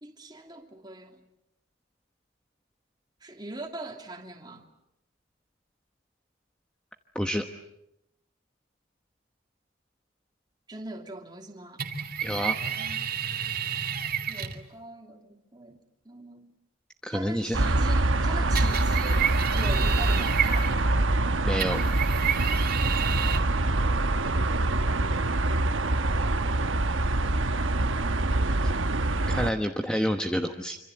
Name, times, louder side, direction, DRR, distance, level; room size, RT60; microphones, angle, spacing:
voice 1, 0.0-1.2 3.2-4.7 10.7-11.8 12.7-13.1 14.3-16.5 17.1-21.0 29.8-29.9, right 2 dB, 20° right, 2.7 m, -41 dB
sound 1, 11.8-14.6 18.6-21.0 21.6-23.4, right 8 dB, 45° right, 2.4 m, -30 dB
voice 2, 12.2-12.5 17.0-17.6 21.4-21.9 28.6-28.7 29.3-30.8, equal, 5° left, 1.1 m, -28 dB
sound 2, 17.5-29.5, right 2 dB, 70° right, 1.2 m, -25 dB
26.5 x 26.0 x 7.9 m
head